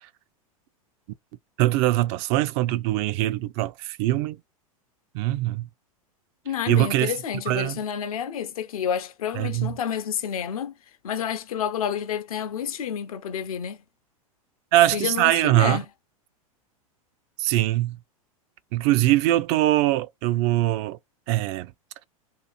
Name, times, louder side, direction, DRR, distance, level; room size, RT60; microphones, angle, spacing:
voice 1, 1.6-4.4 5.1-5.7 6.7-7.1 7.5-7.8 9.4-9.7 14.7-15.8 17.4-18.0 18.7-21.0 21.3-21.7, right 16 dB, 45° right, 0.4 m, -22 dB
voice 2, 6.5-10.7 11.0-13.8 14.9-15.8, left 8 dB, 75° left, 0.7 m, -29 dB
2.8 x 2.4 x 3.9 m
hypercardioid pair, 100°, 19 cm